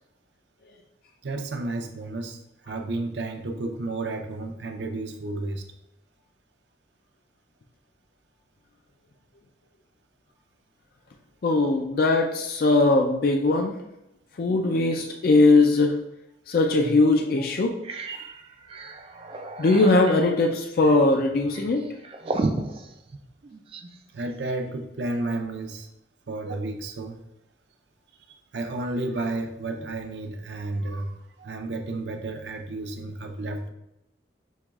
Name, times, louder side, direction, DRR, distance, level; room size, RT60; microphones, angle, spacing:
voice 1, 1.2-5.6 18.1-18.4 24.1-25.9 26.3-27.2 28.3-33.7, right 2 dB, 80° right, 5 dB, 0.5 m, -32 dB
voice 2, 11.4-13.7 14.4-16.0 16.5-17.8 19.6-21.8, left 2 dB, 55° left, 3 dB, 0.4 m, -20 dB
sound 1, 16.6-16.7 17.2-17.3 17.6-24.0, right 2 dB, 30° right, 0.3 m, -34 dB
6.4 x 3.0 x 2.3 m, 0.86 s
head